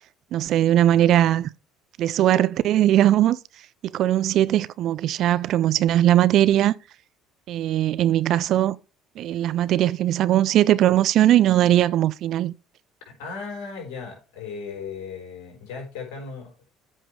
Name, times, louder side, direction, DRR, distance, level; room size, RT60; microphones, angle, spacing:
voice 1, 0.3-1.5 2.0-3.4 3.8-6.7 7.5-8.8 9.2-12.5, right 12 dB, 55° right, 0.4 m, -19 dB
voice 2, 13.0-16.5, left 5 dB, 65° left, 4.7 m, -36 dB
13.5 x 5.5 x 3.3 m
figure-of-eight pair, 60°, 0 cm